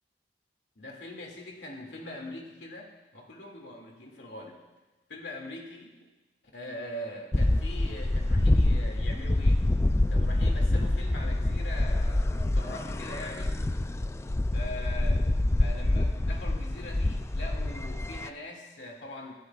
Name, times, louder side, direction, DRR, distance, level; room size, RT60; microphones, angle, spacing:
voice 1, 0.8-4.6 5.1-5.9 6.5-9.7 10.1-13.6 14.5-15.3 15.6-19.3, left 1 dB, 85° left, 0 dB, 2.3 m, -42 dB
sound 1, 7.3-18.3, left 1 dB, 15° left, 0.3 m, -26 dB
26.5 x 11.5 x 2.4 m, 1.2 s
head